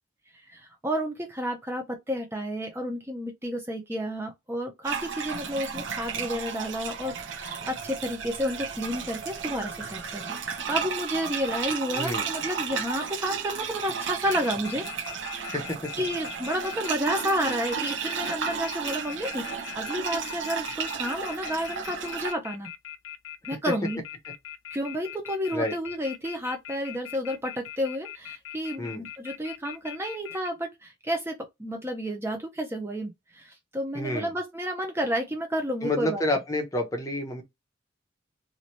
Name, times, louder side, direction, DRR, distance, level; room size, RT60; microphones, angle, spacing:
voice 1, 0.5-10.4 10.7-14.9 15.1-15.5 16.0-22.7 23.5-24.0 24.7-36.2, equal, 10° right, 0.5 m, -31 dB
sound 1, 4.8-22.3, right 6 dB, 65° right, 0.7 m, -33 dB
voice 2, 11.9-12.3 15.5-15.9 23.5-23.6 25.5-25.7 28.8-29.1 33.9-34.3 35.8-37.4, left 1 dB, 15° left, 0.8 m, -29 dB
sound 2, 14.3-30.5, left 11 dB, 75° left, 0.5 m, -41 dB
2.8 x 2.6 x 3.1 m
head